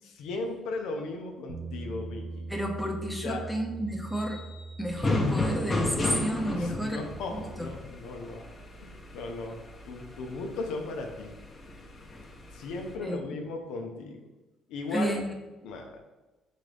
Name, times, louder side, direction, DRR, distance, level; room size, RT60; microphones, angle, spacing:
voice 1, 0.0-2.2 3.2-3.5 6.6-8.4 8.8-9.6 9.9-11.3 12.5-14.3 14.7-15.2 15.6-16.0, left 3 dB, 80° left, 2 dB, 0.6 m, -36 dB
Bass guitar, 1.5-7.7, right 3 dB, 85° right, 0.7 m, -42 dB
sound 1, 2.4-2.5 4.0-5.5, left 2 dB, 40° right, 0.7 m, -53 dB
voice 2, 2.5-4.4 4.8-7.0 7.3-7.7 13.0-13.4 14.9-15.3, equal, ahead, 1 dB, 0.8 m, -31 dB
sound 2, 4.9-12.9, left 2 dB, 30° left, 0.9 m, -34 dB
4.1 x 3.8 x 3.4 m, 1.1 s
supercardioid pair, 80°, 0 cm